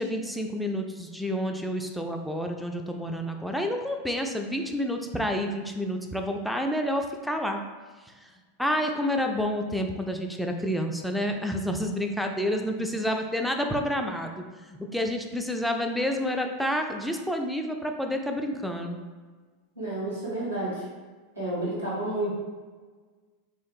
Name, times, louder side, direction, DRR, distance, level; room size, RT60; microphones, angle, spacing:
voice 1, 0.0-7.6 8.6-19.0, equal, ahead, 3 dB, 0.3 m, -29 dB
voice 2, 19.8-20.9 21.3-22.3, right 1 dB, 90° right, -9 dB, 1.2 m, -30 dB
3.4 x 2.7 x 2.6 m, 1.4 s
figure-of-eight pair, 85°, 0 cm